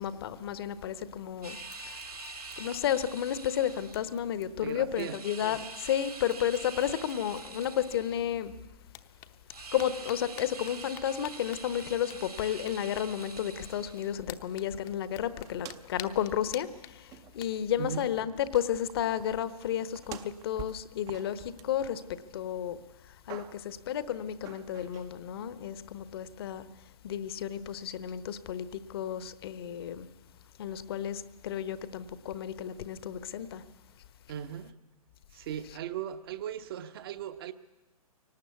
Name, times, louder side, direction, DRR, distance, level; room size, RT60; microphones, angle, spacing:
voice 1, 0.0-2.0 2.6-8.5 9.7-30.1 30.6-33.6 35.5-35.8, left 10 dB, 40° left, 1.1 m, -32 dB
sound 1, 1.0-1.3 1.7-3.2 3.5-3.6 3.9-5.3 6.0-6.1 6.3-8.4 8.8-19.0, left 13 dB, 20° left, 0.9 m, -52 dB
sound 2, 1.4-4.1 5.0-8.4 9.5-14.2, right 3 dB, 80° right, 2.6 m, -45 dB
voice 2, 4.6-5.2 17.8-18.1 34.3-34.8 35.3-37.5, right 9 dB, 40° right, 1.0 m, -38 dB
sound 3, 15.4-16.1 16.4-16.5 17.1-17.5 17.8-22.4 22.8-23.8 24.4-25.1, right 10 dB, 15° right, 0.7 m, -48 dB
23.5 x 18.5 x 8.3 m
figure-of-eight pair, 120°, 19 cm